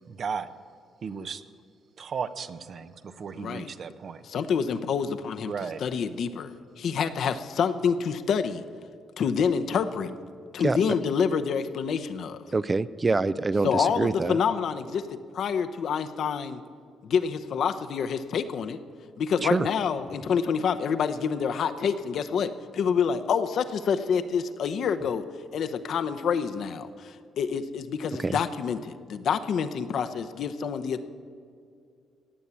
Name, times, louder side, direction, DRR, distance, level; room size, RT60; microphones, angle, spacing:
voice 1, 0.1-0.5 1.0-1.4 2.0-4.2 5.5-5.8, right 6 dB, 50° right, 12 dB, 0.8 m, -35 dB
voice 2, 3.3-3.7 4.2-5.5 5.8-8.6 9.2-10.1 10.5-12.4 13.6-16.6 17.0-18.8 19.2-25.2 25.5-31.1, left 6 dB, 65° left, 10 dB, 0.8 m, -27 dB
voice 3, 12.5-14.4 19.4-19.7 28.2-28.4, right 3 dB, 25° right, 15 dB, 0.4 m, -25 dB
17.5 x 7.3 x 8.3 m, 2.3 s
cardioid pair, 90°, 0 cm